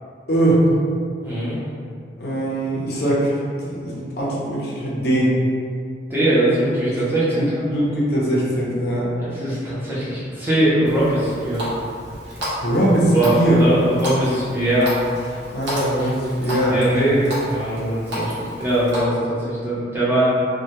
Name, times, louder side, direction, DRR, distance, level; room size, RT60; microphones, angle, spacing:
voice 1, 0.3-0.6 2.2-3.3 3.6-5.4 7.4-7.5 7.7-9.1 12.6-13.6 15.5-16.8, right 1 dB, 55° left, -6 dB, 0.5 m, -21 dB
voice 2, 1.2-1.6 6.1-7.6 9.2-11.6 13.1-14.9 16.5-20.3, right 1 dB, 10° right, -10 dB, 0.5 m, -21 dB
Water tap faucet, 10.8-19.0, equal, 75° right, 0.8 m, -31 dB
2.1 x 2.1 x 2.8 m, 2.2 s
head